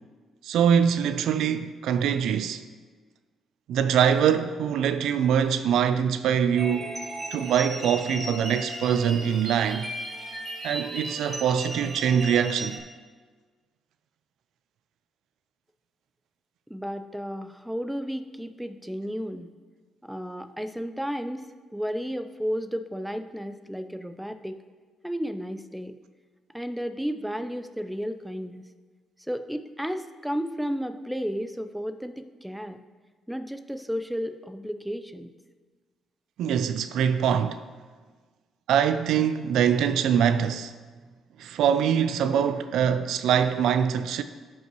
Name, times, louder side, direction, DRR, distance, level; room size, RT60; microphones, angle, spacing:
voice 1, 0.4-2.6 3.7-6.9 7.3-9.9 10.6-12.8 36.4-37.6 38.7-40.7 41.4-44.2, right 8 dB, 80° right, 0.4 m, -23 dB
sound 1, 6.6-12.8, right 1 dB, 25° right, 1.8 m, -36 dB
voice 2, 16.7-19.5 20.0-24.6 25.0-25.9 26.5-28.6 29.2-32.8 33.3-35.3, equal, 5° right, 0.5 m, -33 dB
14.0 x 5.4 x 3.1 m
cardioid pair, 90°, 0 cm